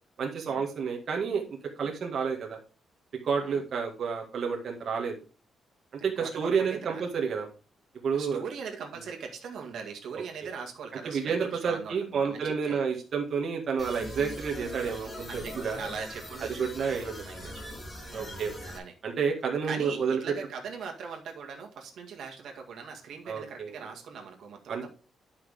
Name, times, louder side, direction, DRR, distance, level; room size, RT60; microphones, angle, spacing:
voice 1, 0.2-1.4 1.8-2.6 3.2-5.1 6.0-7.5 8.0-8.4 11.0-15.8 16.6-17.2 18.1-18.5 19.0-20.2 23.3-23.7 24.7-24.8, right 6 dB, 50° right, 0 dB, 1.8 m, -30 dB
voice 2, 6.0-7.3 8.1-12.9 15.3-17.7 18.1-18.9 19.6-24.9, right 6 dB, 75° right, 1 dB, 1.9 m, -41 dB
sound 1, 13.8-18.8, equal, 20° left, 3.8 m, -41 dB
10.5 x 5.8 x 3.5 m, 0.35 s
cardioid pair, 145°, 0 cm